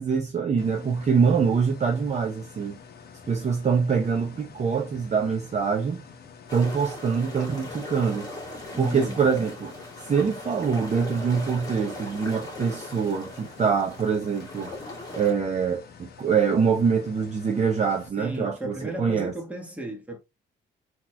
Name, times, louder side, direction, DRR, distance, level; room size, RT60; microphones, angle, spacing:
voice 1, 0.0-2.8 3.3-6.0 6.5-8.3 8.8-9.7 10.1-14.7 15.1-19.3, right 6 dB, 35° right, 0.6 m, -24 dB
sound 1, 0.6-18.1, left 6 dB, 50° left, 0.8 m, -48 dB
sound 2, 6.5-15.3, left 2 dB, 20° left, 2.0 m, -39 dB
voice 2, 8.7-9.3 18.2-20.2, right 1 dB, 5° right, 1.2 m, -35 dB
3.8 x 3.0 x 2.2 m
cardioid pair, 90°, 20 cm